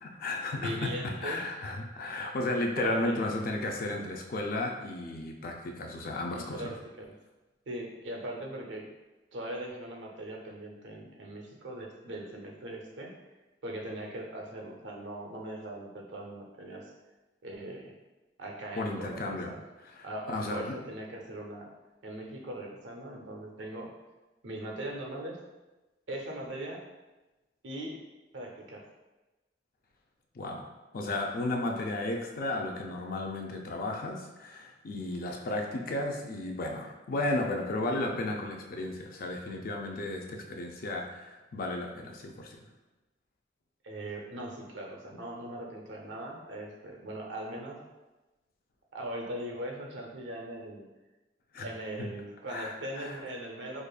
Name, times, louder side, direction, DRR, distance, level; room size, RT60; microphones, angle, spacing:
voice 1, 0.0-6.7 18.8-19.5 20.0-20.8 30.3-42.7 51.5-51.7 52.5-53.2, left 2 dB, 50° left, 2 dB, 0.4 m, -34 dB
voice 2, 0.6-1.5 2.8-3.2 6.3-7.1 7.7-8.9 9.3-13.1 13.6-16.9 17.4-18.0 18.4-19.6 20.0-21.7 22.0-24.0 24.4-25.4 26.1-26.8 27.6-28.0 28.3-28.8 43.8-47.8 48.9-50.9 51.6-53.8, right 1 dB, 85° right, 0 dB, 0.7 m, -40 dB
5.0 x 2.4 x 2.3 m, 1.1 s
head